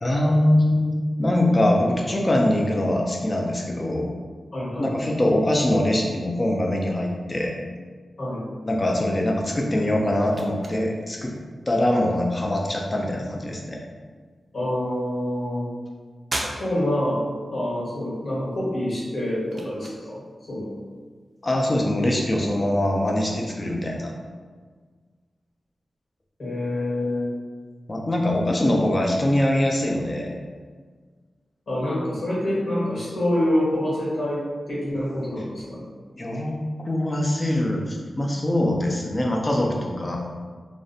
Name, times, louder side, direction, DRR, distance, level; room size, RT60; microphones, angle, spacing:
voice 1, 0.0-4.1 4.8-7.5 8.6-11.3 11.7-13.8 21.4-24.1 27.9-30.3 36.1-36.6 36.8-40.2, left 1 dB, 30° left, 0 dB, 0.4 m, -23 dB
voice 2, 4.5-4.9 8.2-8.4 14.5-15.7 16.6-17.2 17.5-20.2 20.5-20.7 26.4-27.3 31.7-35.8, left 1 dB, 65° left, -8 dB, 1.1 m, -26 dB
sound 1, 9.5-23.9, right 1 dB, 45° right, 0.3 m, -43 dB
2.5 x 2.1 x 2.6 m, 1.5 s
wide cardioid pair, 100°, 0 cm